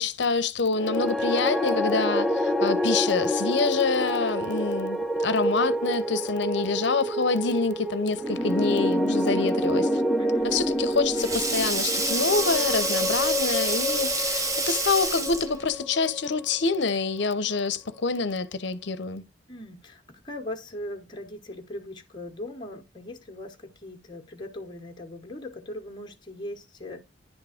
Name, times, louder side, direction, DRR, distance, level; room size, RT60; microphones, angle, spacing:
voice 1, 0.0-10.0 10.5-19.2, left 4 dB, 65° left, 0.7 m, -26 dB
sound 1, 0.8-17.1, equal, ahead, 0.4 m, -28 dB
voice 2, 10.2-10.5 19.5-27.0, left 1 dB, 25° left, 1.0 m, -39 dB
Sink (filling or washing), 10.5-15.7, right 2 dB, 15° right, 0.8 m, -28 dB
10.5 x 3.6 x 5.0 m
head